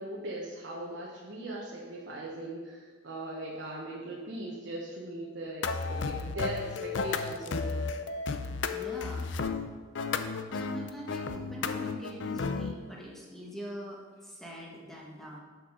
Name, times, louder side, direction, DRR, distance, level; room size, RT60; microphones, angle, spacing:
voice 1, 0.0-7.8, right 1 dB, 70° right, -4 dB, 1.1 m, -39 dB
sound 1, 5.6-12.7, left 4 dB, 65° left, 0.5 m, -33 dB
voice 2, 8.6-9.2 10.5-15.4, equal, ahead, -3 dB, 1.3 m, -43 dB
6.9 x 6.2 x 5.0 m, 1.5 s
head